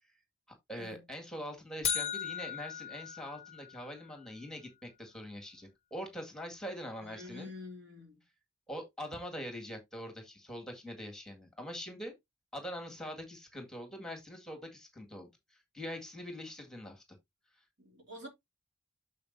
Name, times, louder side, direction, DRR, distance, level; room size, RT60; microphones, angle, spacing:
voice 1, 0.7-7.5 8.7-12.1 12.5-17.0 17.6-17.7, equal, 5° left, 2.0 m, -43 dB
sound 1, 1.8-4.0, left 8 dB, 35° left, 0.6 m, -37 dB
voice 2, 7.0-8.2 17.8-18.3, left 2 dB, 60° right, 2.9 m, -47 dB
8.5 x 6.7 x 2.7 m
head